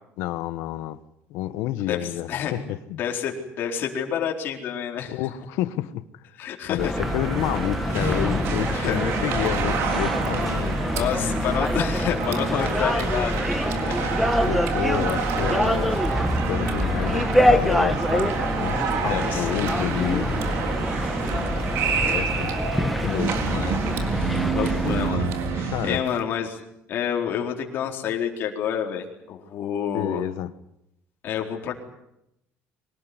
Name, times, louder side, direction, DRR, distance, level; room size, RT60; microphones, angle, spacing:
voice 1, 0.2-1.0 1.3-3.0 5.1-6.0 6.7-11.4 14.5-16.1 16.4-20.3 21.3-22.5 22.8-23.4 25.7-26.0 29.9-30.5, left 14 dB, 80° left, 1.3 m, -30 dB
voice 2, 1.8-2.5 3.0-5.2 6.4-7.2 8.0-8.1 8.7-9.5 10.9-14.3 19.1-19.7 23.4-23.8 24.5-26.6 26.9-30.2 31.2-31.7, left 8 dB, 45° left, 4.3 m, -29 dB
sound 1, 6.8-25.1, equal, ahead, 1.2 m, -25 dB
sound 2, 7.0-26.0, right 5 dB, 60° right, 3.8 m, -29 dB
sound 3, 10.1-26.2, right 8 dB, 80° right, 3.4 m, -47 dB
23.5 x 19.0 x 9.8 m
cardioid pair, 160°, 5 cm